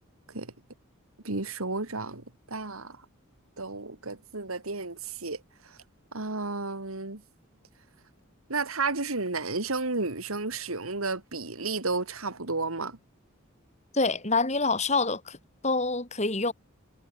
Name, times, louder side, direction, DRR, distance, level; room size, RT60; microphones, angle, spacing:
voice 1, 1.2-3.0 3.6-5.8 6.1-7.2 8.5-13.0, right 3 dB, 80° right, 2.7 m, -32 dB
voice 2, 13.9-15.4 15.6-16.5, left 3 dB, 30° left, 3.6 m, -26 dB
head